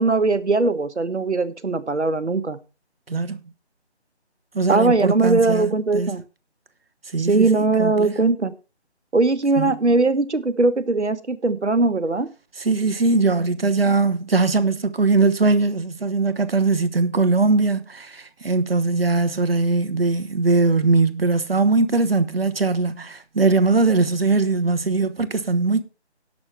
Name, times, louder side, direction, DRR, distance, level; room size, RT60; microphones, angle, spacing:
voice 1, 0.0-2.6 4.7-6.2 7.2-8.5 9.1-12.3, right 3 dB, 85° right, 1.2 m, -20 dB
voice 2, 3.1-3.4 4.5-6.1 7.1-8.1 9.6-9.7 12.6-25.8, right 3 dB, 60° right, 1.2 m, -20 dB
18.0 x 6.4 x 3.3 m
figure-of-eight pair, 160°, 34 cm